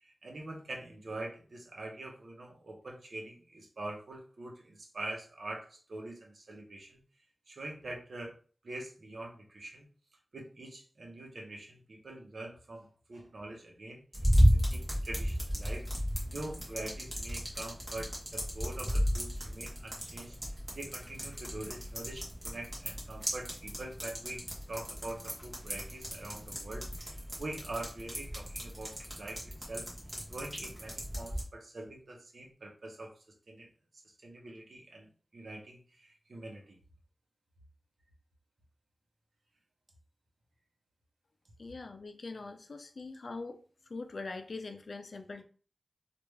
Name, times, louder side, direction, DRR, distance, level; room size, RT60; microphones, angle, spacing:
voice 1, 0.0-7.0 7.5-8.3 8.6-9.9 10.3-14.0 14.5-15.8 16.3-20.4 20.7-29.9 30.3-33.1 33.5-33.7 34.2-36.8, right 2 dB, 75° right, 1 dB, 0.9 m, -44 dB
sound 1, 14.1-31.4, equal, 20° right, 1.4 m, -33 dB
voice 2, 41.6-43.6 43.9-45.4, left 3 dB, 70° left, 6 dB, 0.5 m, -42 dB
3.4 x 2.5 x 3.2 m, 0.39 s
wide cardioid pair, 80°, 0 cm